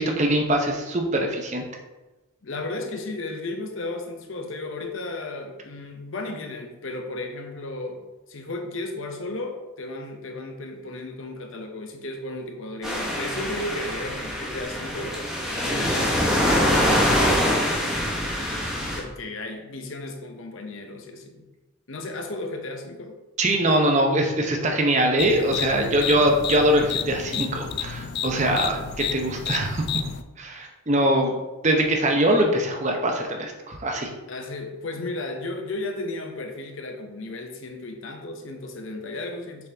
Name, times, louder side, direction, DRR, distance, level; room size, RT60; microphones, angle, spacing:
voice 1, 0.0-1.6 23.4-28.8 29.1-29.9 30.4-31.4 31.6-34.1, right 1 dB, 35° right, 2 dB, 0.7 m, -22 dB
voice 2, 2.4-8.0 8.3-15.2 15.5-17.6 19.0-21.5 21.9-23.2 28.3-28.7 34.3-39.7, left 2 dB, 65° left, 4 dB, 0.8 m, -34 dB
sound 1, 12.8-19.0, equal, ahead, 1.1 m, -24 dB
sound 2, 25.2-30.2, left 8 dB, 50° left, 0.3 m, -31 dB
6.9 x 4.2 x 3.4 m, 1.1 s
head